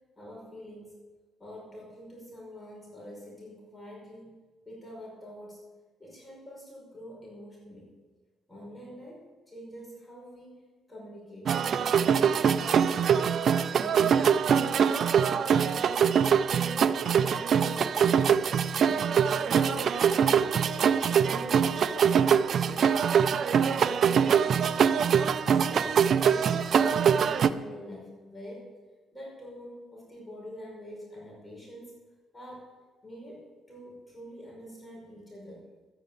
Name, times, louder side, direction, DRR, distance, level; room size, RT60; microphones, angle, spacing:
voice 1, 0.2-0.9 1.4-4.4 4.7-5.6 6.0-8.0 8.5-13.3 13.7-14.5 14.9-16.2 16.5-18.4 18.8-20.5 20.9-23.1 23.3-24.9 25.5-28.7 29.1-32.0 32.3-32.8 33.0-35.7, equal, 15° left, -3 dB, 5.3 m, -45 dB
sound 1, 11.5-27.5, right 7 dB, 60° right, 0.6 m, -23 dB
13.0 x 9.3 x 7.1 m, 1.4 s
cardioid pair, 90°, 0 cm